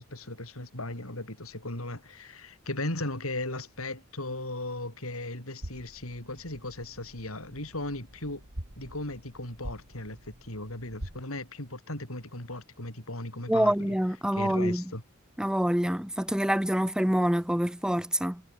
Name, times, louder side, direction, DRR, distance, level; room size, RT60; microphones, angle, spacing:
voice 1, 0.0-8.4 8.8-13.9 14.3-15.0, left 2 dB, 80° left, 7.9 m, -37 dB
sound 1, 5.6-11.2, right 1 dB, 65° right, 3.7 m, -45 dB
voice 2, 13.5-14.8 15.4-18.4, equal, 5° right, 0.7 m, -26 dB
head